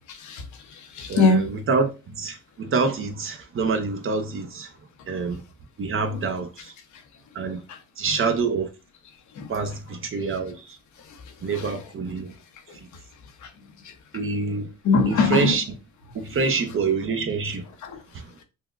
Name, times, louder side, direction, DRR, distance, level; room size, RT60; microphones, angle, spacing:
voice 1, 0.1-1.5 6.1-6.3 7.7-7.8 9.3-9.7 11.1-11.2 11.5-11.8 13.4-13.5 13.8-13.9 14.8-15.6 17.8-18.0, left 4 dB, 70° left, 0.9 m, -23 dB
voice 2, 1.1-4.7 5.1-5.4 5.8-6.7 7.3-7.6 8.0-8.7 9.5-10.8 11.4-12.3 14.1-14.7 15.1-15.6 16.1-17.6 18.1-18.3, right 4 dB, 45° right, 0.8 m, -26 dB
5.8 x 2.3 x 2.4 m
cardioid pair, 90°, 30 cm